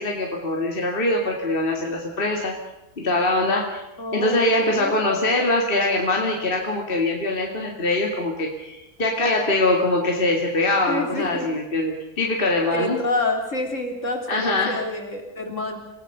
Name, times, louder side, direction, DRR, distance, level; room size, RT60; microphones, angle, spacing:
voice 1, 0.0-2.5 3.0-3.8 4.1-13.0 14.3-14.8, left 2 dB, 35° left, 0 dB, 2.6 m, -23 dB
voice 2, 4.0-4.9 10.9-11.5 12.7-15.8, left 2 dB, 50° left, 3 dB, 3.9 m, -27 dB
27.0 x 18.0 x 6.8 m, 0.91 s
omnidirectional pair, 1.6 m